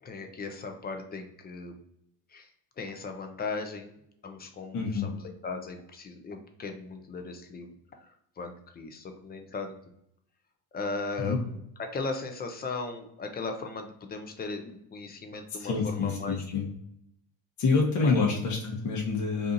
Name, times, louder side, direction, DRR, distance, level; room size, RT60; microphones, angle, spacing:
voice 1, 0.0-1.8 2.3-2.5 2.8-3.9 4.2-7.7 8.0-9.7 10.7-16.4 18.0-18.4, left 4 dB, 20° left, 5 dB, 0.4 m, -37 dB
voice 2, 4.7-5.1 11.2-11.4 15.6-16.6 17.6-19.5, left 4 dB, 35° left, -2 dB, 0.9 m, -27 dB
2.7 x 2.4 x 3.8 m, 0.75 s
supercardioid pair, 95°, 48 cm